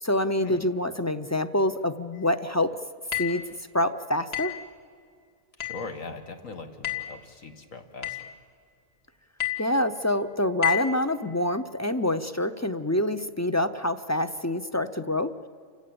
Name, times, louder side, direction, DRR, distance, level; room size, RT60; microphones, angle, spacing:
voice 1, 0.0-2.7 3.2-3.4 3.7-4.6 9.6-15.3, left 1 dB, 25° left, 11 dB, 0.3 m, -26 dB
sound 1, 3.1-3.5 4.3-4.7 5.6-5.9 6.8-7.2 8.0-8.3 9.4-9.7 10.6-11.0, left 12 dB, 50° left, 2.3 m, -30 dB
voice 2, 5.6-8.2, left 4 dB, 85° left, 6 dB, 2.1 m, -40 dB
29.0 x 15.5 x 8.6 m, 2.3 s
omnidirectional pair, 1.3 m